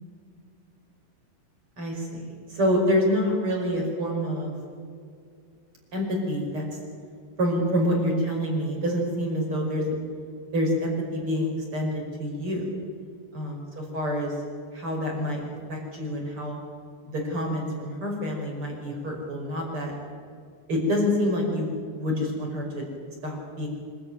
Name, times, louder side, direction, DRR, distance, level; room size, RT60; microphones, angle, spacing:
voice 1, 1.8-4.5 5.9-6.6 7.4-9.8 10.5-12.8 13.3-14.3 14.7-15.4 15.7-16.6 17.0-19.9 20.7-22.9 23.2-23.7, equal, 30° right, 0 dB, 5.8 m, -27 dB
25.5 x 15.0 x 9.5 m, 2.2 s
omnidirectional pair, 5.3 m